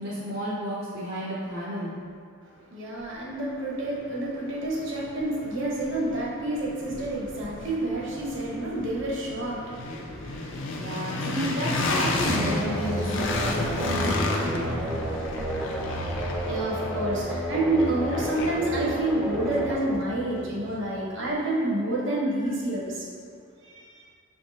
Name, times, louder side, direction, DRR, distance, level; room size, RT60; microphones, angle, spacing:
voice 1, 0.0-1.9 10.8-14.7, equal, 50° right, -7 dB, 0.5 m, -32 dB
voice 2, 2.4-11.3 16.1-23.1 23.6-24.1, right 1 dB, 65° right, -4 dB, 1.0 m, -29 dB
sound 1, 4.2-4.3 4.8-20.7, left 2 dB, 65° left, 0.5 m, -32 dB
sound 2, 12.2-20.9, equal, ahead, 0.4 m, -32 dB
5.4 x 3.4 x 2.7 m, 2.2 s
head